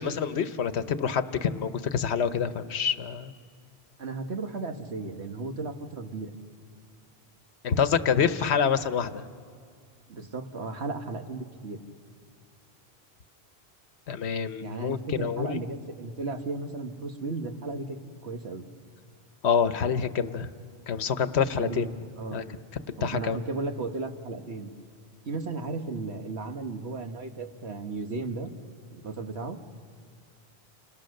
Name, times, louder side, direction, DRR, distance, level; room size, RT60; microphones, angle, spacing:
voice 1, 0.0-3.3 7.6-9.2 14.1-15.6 19.4-20.5 20.9-21.9 22.3-22.4 22.9-23.4, left 7 dB, 85° left, 12 dB, 1.2 m, -27 dB
voice 2, 4.0-6.3 10.1-11.8 14.6-18.0 18.2-18.7 21.5-21.9 22.2-22.5 23.0-24.7 25.3-28.5 28.9-29.6, right 3 dB, 85° right, 6 dB, 1.8 m, -35 dB
29.5 x 26.5 x 6.5 m, 2.1 s
omnidirectional pair, 1.1 m